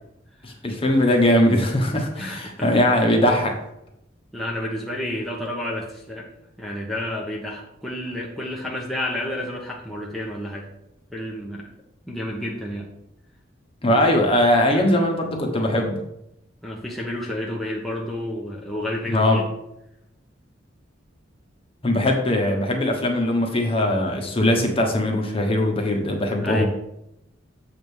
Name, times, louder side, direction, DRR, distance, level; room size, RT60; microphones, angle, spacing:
voice 1, 0.4-3.6 13.8-16.0 19.1-19.4 21.8-26.6, left 1 dB, 30° left, 1 dB, 1.1 m, -20 dB
voice 2, 2.2-2.9 4.3-6.3 6.6-10.7 11.1-11.7 12.1-12.9 14.7-14.9 16.6-19.4 26.4-26.6, left 1 dB, ahead, -3 dB, 0.9 m, -30 dB
7.5 x 3.6 x 6.2 m, 0.82 s
head